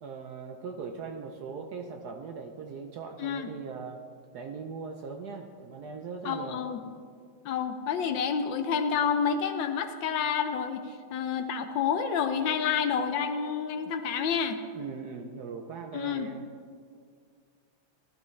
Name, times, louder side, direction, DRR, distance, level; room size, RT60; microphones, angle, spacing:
voice 1, 0.0-4.0 4.3-6.6 14.7-16.4, right 5 dB, 65° right, 4 dB, 1.0 m, -40 dB
voice 2, 3.2-3.5 6.2-6.8 7.4-14.6 15.9-16.3, left 7 dB, 70° left, 8 dB, 1.2 m, -29 dB
14.5 x 12.0 x 3.2 m, 2.1 s
omnidirectional pair, 2.3 m